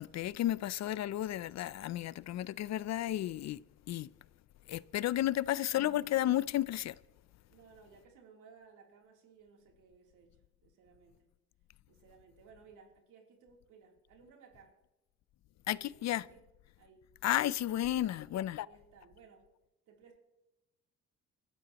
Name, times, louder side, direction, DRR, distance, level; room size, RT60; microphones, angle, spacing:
voice 1, 0.0-3.6 3.9-4.1 4.7-6.9 15.7-16.2 17.2-18.7, left 13 dB, 60° left, 0.5 m, -32 dB
voice 2, 7.5-10.4 10.6-11.3 11.9-14.7 15.6-16.0 16.3-16.4 16.8-17.1 17.8-19.5 19.9-20.2, right 5 dB, 90° right, 3.3 m, -60 dB
24.5 x 12.5 x 3.0 m
cardioid pair, 90°, 30 cm